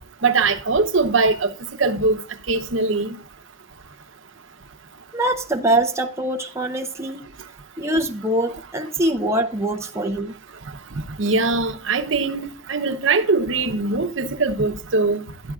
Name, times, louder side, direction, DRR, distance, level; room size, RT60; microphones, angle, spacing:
voice 1, 0.2-1.5 1.8-3.2 10.9-15.2, right 3 dB, 70° right, 0.8 m, -21 dB
voice 2, 5.1-7.2 7.8-10.3, right 1 dB, 15° right, 0.6 m, -23 dB
12.0 x 10.0 x 2.4 m
head